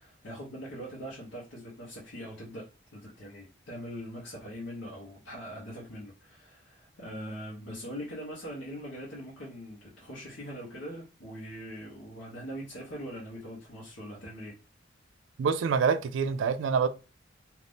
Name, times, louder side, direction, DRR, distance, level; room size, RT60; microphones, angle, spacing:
voice 1, 0.0-2.7 2.9-14.5, equal, 75° left, 0.9 m, -42 dB
voice 2, 15.4-16.9, right 6 dB, 75° right, 0.3 m, -26 dB
2.6 x 2.4 x 3.4 m
head